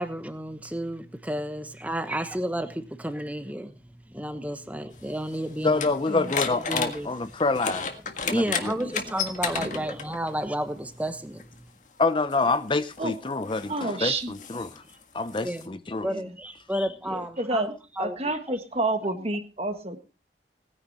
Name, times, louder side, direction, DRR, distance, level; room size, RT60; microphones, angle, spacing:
voice 1, 0.0-5.9 6.6-7.1 8.3-11.7 14.7-15.0 15.4-15.7 16.0-17.7 18.0-18.6, right 1 dB, 10° right, 1.1 m, -32 dB
sound 1, 4.9-10.3 11.4-11.5 12.3-15.7, left 6 dB, 45° left, 1.7 m, -33 dB
voice 2, 5.6-7.9 8.2-8.3 8.6-8.7 12.0-14.7 15.1-16.1 16.7-16.9, left 3 dB, 30° left, 0.6 m, -26 dB
voice 3, 13.7-14.3 16.0-16.3 17.1-20.0, right 2 dB, 35° right, 1.6 m, -30 dB
19.0 x 9.9 x 4.2 m
head